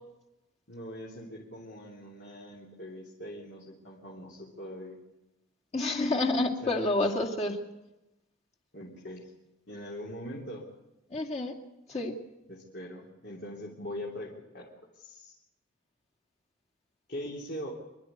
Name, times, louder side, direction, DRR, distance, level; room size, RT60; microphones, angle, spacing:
voice 1, 0.7-5.0 6.6-7.0 8.7-9.3 9.7-10.6 12.5-15.3 17.1-17.7, equal, 55° left, -4 dB, 3.2 m, -42 dB
voice 2, 5.7-7.6 11.1-11.5 11.9-12.1, left 2 dB, 30° left, 0 dB, 2.4 m, -28 dB
26.0 x 12.0 x 9.3 m, 0.97 s
head